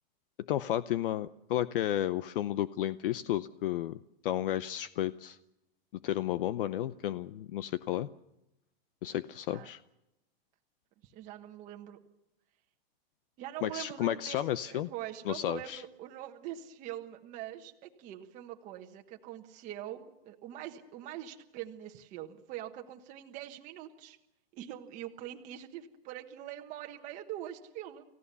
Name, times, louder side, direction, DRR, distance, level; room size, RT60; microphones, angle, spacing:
voice 1, 0.5-4.0 4.2-5.4 6.0-8.1 9.0-9.8 13.6-14.9 15.3-15.8, left 12 dB, 60° left, 15 dB, 0.7 m, -32 dB
voice 2, 11.0-12.0 13.4-24.2 24.5-28.0, right 12 dB, 25° right, 3 dB, 1.3 m, -43 dB
29.5 x 16.0 x 6.9 m, 0.92 s
supercardioid pair, 170°, 30 cm